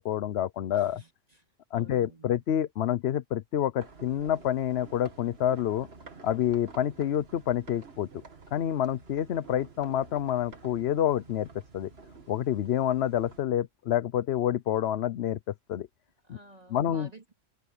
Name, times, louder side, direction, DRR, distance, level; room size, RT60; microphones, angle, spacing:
voice 1, 0.0-1.0 1.7-5.9 6.2-8.1 8.5-11.5 11.7-11.9 12.3-15.4 15.7-15.9 16.3-16.4 16.7-17.1, left 10 dB, 60° left, 0.9 m, -28 dB
voice 2, 0.7-1.4 1.7-2.4 16.2-17.4, right 2 dB, 30° right, 2.5 m, -52 dB
sound 1, 3.8-13.4, right 4 dB, 50° right, 2.1 m, -50 dB
omnidirectional pair, 1.3 m